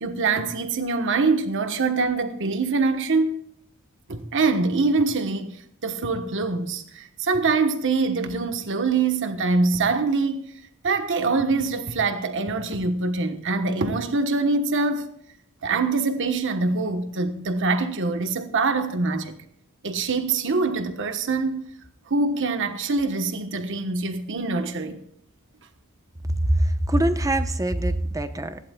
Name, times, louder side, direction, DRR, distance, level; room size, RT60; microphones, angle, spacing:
voice 1, 0.0-3.4 4.1-5.5 5.8-10.4 10.8-15.1 15.6-19.3 19.8-21.6 22.1-25.0, right 3 dB, 60° right, 1.2 m, -24 dB
voice 2, 26.3-28.6, right 1 dB, 15° right, 0.9 m, -23 dB
19.5 x 15.5 x 2.3 m
head